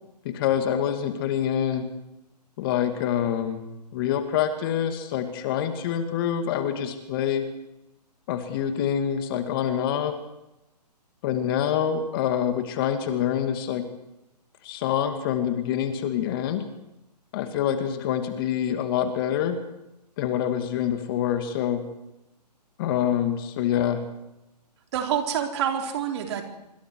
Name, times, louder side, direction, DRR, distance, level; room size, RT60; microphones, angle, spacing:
voice 1, 0.2-1.9 2.6-3.6 3.9-7.5 8.3-10.2 11.2-13.9 14.6-16.6 17.3-19.6 20.2-21.8 22.8-24.1, left 9 dB, 35° left, 7 dB, 2.2 m, -26 dB
voice 2, 24.9-26.4, right 9 dB, 40° right, 3 dB, 4.0 m, -27 dB
26.5 x 24.0 x 4.7 m, 0.91 s
figure-of-eight pair, 140°, 21 cm